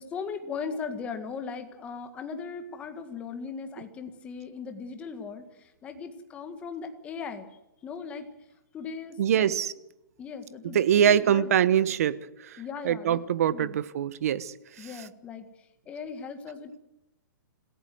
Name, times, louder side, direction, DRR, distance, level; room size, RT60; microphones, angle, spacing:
voice 1, 0.0-7.5 7.8-8.3 8.7-9.5 10.2-11.5 12.6-13.2 13.5-13.8 14.8-15.5 15.8-16.8, left 5 dB, 10° left, 7 dB, 1.8 m, -38 dB
voice 2, 9.2-9.7 10.7-12.6 12.8-14.9, right 9 dB, 45° right, 17 dB, 1.2 m, -24 dB
26.5 x 17.0 x 7.9 m, 0.91 s
hypercardioid pair, 170°, 11 cm